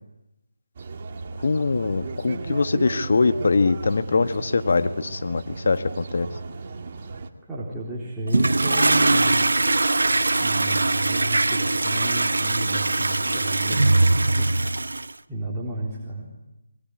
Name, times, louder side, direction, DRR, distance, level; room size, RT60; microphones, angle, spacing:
sound 1, 0.7-7.3, right 4 dB, 35° right, 2.2 m, -35 dB
voice 1, 1.4-6.3, left 4 dB, 55° left, 10 dB, 1.4 m, -22 dB
voice 2, 7.5-9.4 10.4-14.6 15.3-16.3, right 1 dB, 5° right, -6 dB, 3.9 m, -32 dB
Toilet flush, 8.3-15.1, right 2 dB, 70° right, 1.0 m, -21 dB
28.0 x 22.0 x 9.5 m, 0.94 s
figure-of-eight pair, 155°, 0 cm